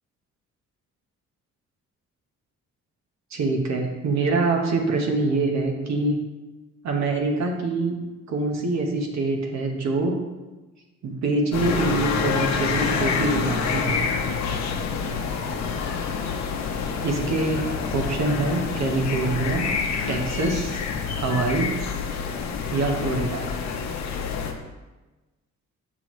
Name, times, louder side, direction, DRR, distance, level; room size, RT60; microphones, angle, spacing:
voice 1, 3.3-6.2 6.8-8.0 8.3-10.1 11.0-14.0 17.0-17.6 17.9-19.7 20.1-20.8 21.1-21.7 22.7-23.6, right 3 dB, 65° right, 2 dB, 1.1 m, -25 dB
sound 1, 11.5-24.5, left 5 dB, 65° left, 0.9 m, -27 dB
6.1 x 6.0 x 3.1 m, 1.2 s
cardioid pair, 90°, 30 cm